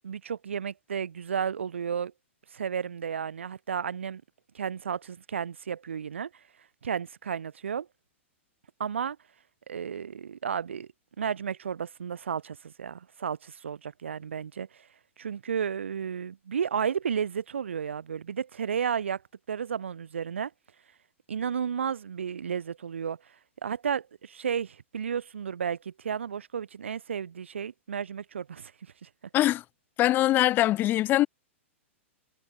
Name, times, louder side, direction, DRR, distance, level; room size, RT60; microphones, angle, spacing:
voice 1, 0.0-2.1 2.5-4.2 4.5-6.3 6.8-7.9 8.8-9.2 9.7-10.9 11.2-14.9 15.2-19.2 19.5-20.5 21.3-23.3 23.6-28.7 29.0-29.1, right 7 dB, 65° right, 6.3 m, -33 dB
voice 2, 29.3-29.6 30.0-31.3, left 15 dB, 30° left, 7.0 m, -22 dB
figure-of-eight pair, 105°, 7 cm